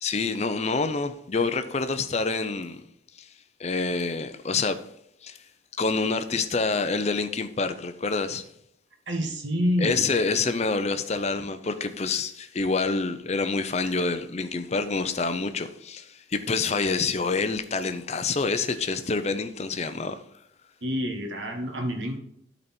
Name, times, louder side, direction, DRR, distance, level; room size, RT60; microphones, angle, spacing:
voice 1, 0.0-2.8 3.2-3.3 3.6-4.8 5.2-5.4 5.8-8.4 9.8-20.2, left 4 dB, 35° left, 0.5 m, -27 dB
voice 2, 9.1-10.1 11.1-11.2 20.8-22.2, equal, 65° right, 1.5 m, -28 dB
12.0 x 4.1 x 4.3 m
head